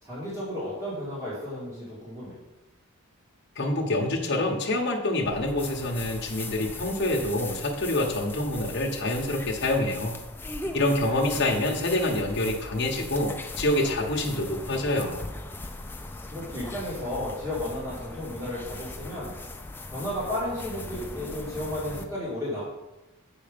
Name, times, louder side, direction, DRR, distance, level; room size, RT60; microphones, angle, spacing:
voice 1, 0.0-2.4 10.6-11.4 16.3-19.3 19.9-22.6, left 1 dB, 15° right, -8 dB, 2.3 m, -33 dB
voice 2, 3.6-10.1 10.7-15.3, left 1 dB, 50° left, 0 dB, 1.1 m, -26 dB
sound 1, 5.2-22.0, left 2 dB, 10° left, 0.4 m, -39 dB
7.6 x 5.0 x 5.2 m, 1.0 s
head